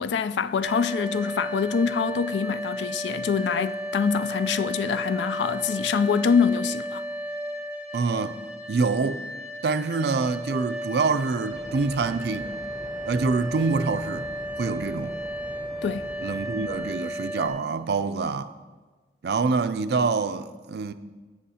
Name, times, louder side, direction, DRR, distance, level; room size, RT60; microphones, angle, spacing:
voice 1, 0.0-7.0 15.8-16.1, left 6 dB, 85° left, 0.3 m, -25 dB
sound 1, 0.6-17.5, equal, 5° right, 0.7 m, -34 dB
voice 2, 7.9-8.4 8.7-9.2 9.6-12.5 13.1-14.3 14.6-15.1 16.2-18.5 19.2-20.9, right 4 dB, 65° right, 0.4 m, -26 dB
sound 2, 11.5-16.9, right 1 dB, 35° right, 0.9 m, -43 dB
16.0 x 6.3 x 2.8 m
head